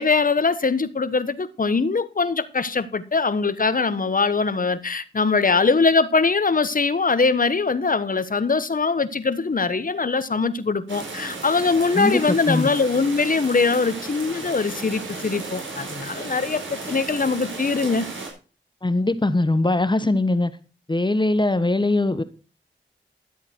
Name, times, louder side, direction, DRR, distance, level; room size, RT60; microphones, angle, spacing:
voice 1, 0.0-18.0, left 4 dB, 45° left, 1.3 m, -22 dB
sound 1, 10.9-18.3, right 3 dB, 75° right, 5.0 m, -35 dB
voice 2, 11.9-12.7 18.8-20.5 20.9-22.2, left 2 dB, 25° left, 1.1 m, -21 dB
12.5 x 8.3 x 4.6 m
cardioid pair, 45°, 20 cm